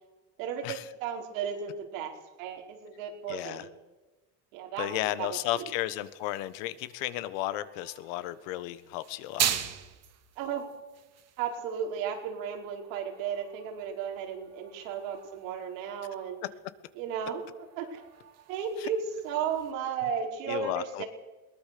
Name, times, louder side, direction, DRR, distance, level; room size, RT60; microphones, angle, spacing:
voice 1, 0.4-3.7 4.5-5.3 5.5-5.6 10.4-10.7 11.4-16.4 17.0-17.4 17.8-18.0 18.5-21.1, right 7 dB, 90° right, 1 dB, 4.9 m, -34 dB
voice 2, 3.3-3.7 4.8-9.5 18.8-18.9 20.5-21.0, left 14 dB, 80° left, 14 dB, 1.5 m, -34 dB
sound 1, 4.8-19.7, right 10 dB, 40° right, 2.1 m, -41 dB
21.5 x 19.0 x 6.9 m, 1.2 s
cardioid pair, 130°, 39 cm